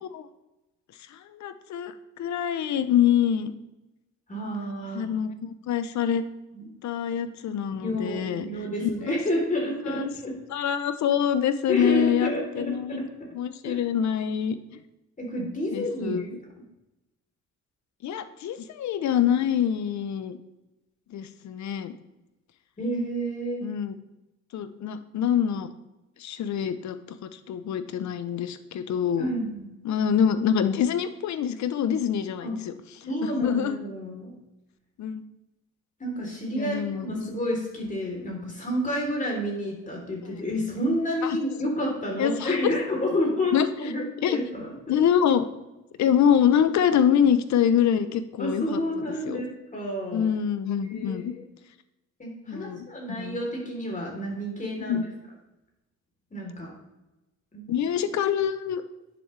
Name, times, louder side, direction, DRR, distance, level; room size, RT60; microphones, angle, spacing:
voice 1, 1.1-3.5 4.9-6.2 6.8-8.5 9.1-9.2 9.9-10.1 10.5-13.0 13.3-14.6 15.7-16.2 18.0-20.4 21.1-21.9 23.6-23.9 24.5-25.7 26.2-29.3 29.8-32.7 33.0-33.8 35.0-35.2 36.5-37.1 40.3-40.4 41.2-41.4 42.2-42.7 43.5-43.7 44.2-44.4 44.9-45.5 46.0-48.8 49.2-49.4 50.1-51.3 52.5-52.9 53.2-53.4 54.8-55.0 57.7-58.8, left 9 dB, 65° left, 11 dB, 0.7 m, -25 dB
voice 2, 4.3-5.1 6.5-6.7 7.8-10.4 11.7-13.3 13.6-13.8 15.2-16.2 22.8-23.6 29.2-29.7 32.4-32.6 33.1-34.3 36.0-43.5 43.8-44.7 48.4-50.3 50.8-51.4 52.2-55.0 56.3-56.7 57.5-57.7, equal, 25° left, -1 dB, 3.3 m, -30 dB
10.0 x 7.1 x 3.3 m, 0.98 s
cardioid pair, 90°, 30 cm